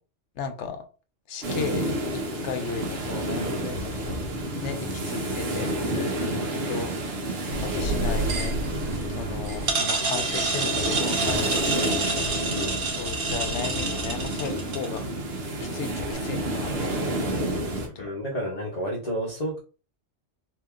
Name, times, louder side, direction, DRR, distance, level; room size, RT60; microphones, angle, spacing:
voice 1, 0.4-0.8 1.3-4.2 4.6-6.4 6.7-6.9 7.6-8.6 9.1-12.5 13.0-15.1 15.6-17.1 17.4-18.1, left 6 dB, 75° left, 1.0 m, -35 dB
sound 1, 1.4-17.9, right 1 dB, 60° right, 1.0 m, -30 dB
voice 2, 6.1-6.6 10.0-10.3 12.5-12.8 18.0-19.6, equal, 35° left, 1.0 m, -32 dB
sound 2, 7.5-15.0, right 3 dB, 90° right, 1.4 m, -28 dB
2.9 x 2.8 x 3.6 m
omnidirectional pair, 1.2 m